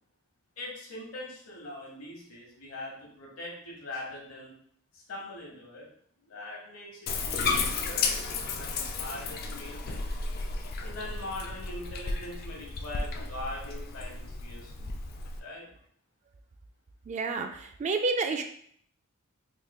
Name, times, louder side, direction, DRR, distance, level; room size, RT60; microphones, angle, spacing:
voice 1, 0.6-4.5 4.9-5.9 6.2-10.0 10.8-14.9 15.4-15.7, left 1 dB, 80° left, -2 dB, 1.2 m, -42 dB
Bathtub (filling or washing), 7.1-15.4, left 4 dB, 45° left, 0.3 m, -33 dB
voice 2, 17.1-18.4, right 3 dB, 35° right, 6 dB, 0.3 m, -29 dB
3.6 x 3.2 x 2.3 m, 0.63 s
head